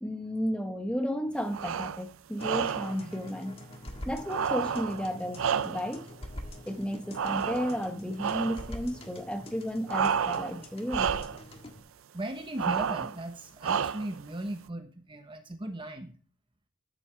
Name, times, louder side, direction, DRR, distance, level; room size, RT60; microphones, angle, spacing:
voice 1, 0.0-3.5 4.0-6.1 6.7-11.1, equal, 5° left, 1.3 m, -33 dB
sound 1, 1.5-2.0 2.4-3.0 4.3-6.0 7.1-7.9 8.2-8.7 9.9-10.6 10.9-11.4 12.6-13.2 13.6-14.2, right 7 dB, 85° right, 0.5 m, -30 dB
sound 2, 2.4-11.8, left 1 dB, 30° left, 1.6 m, -45 dB
voice 2, 12.1-16.2, right 1 dB, 25° right, 1.1 m, -37 dB
13.0 x 8.2 x 3.4 m
head